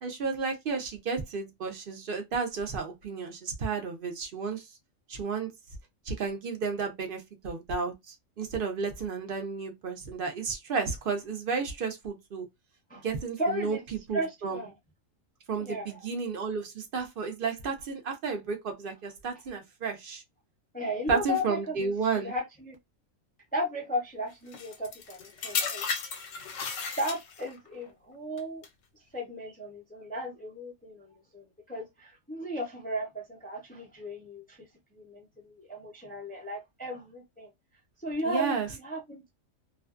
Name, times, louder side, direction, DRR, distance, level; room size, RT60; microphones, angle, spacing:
voice 1, 0.0-4.7 5.1-5.5 6.1-12.5 13.0-13.8 14.1-14.6 15.5-20.2 21.1-22.3 38.2-38.7, right 5 dB, 55° right, 0.6 m, -32 dB
voice 2, 13.4-13.8 14.1-14.7 15.6-16.0 20.7-22.8 23.5-25.9 27.0-28.6 29.1-34.7 34.9-37.5 38.0-39.3, equal, 10° left, 0.4 m, -35 dB
sound 1, 24.5-27.6 28.4-28.7, left 5 dB, 75° left, 1.0 m, -34 dB
2.5 x 2.2 x 2.4 m
omnidirectional pair, 1.4 m